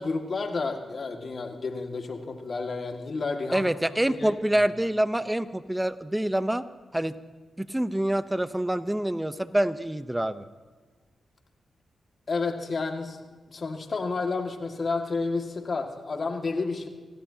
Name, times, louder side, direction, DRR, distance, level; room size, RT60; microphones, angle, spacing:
voice 1, 0.0-3.7 4.1-4.4 12.3-13.2 13.5-16.9, left 3 dB, 55° left, 3 dB, 2.1 m, -30 dB
voice 2, 3.5-6.6 6.9-7.2 7.6-10.4, right 1 dB, 10° right, 12 dB, 0.8 m, -26 dB
26.0 x 17.5 x 2.9 m, 1.4 s
supercardioid pair, 50°, 0 cm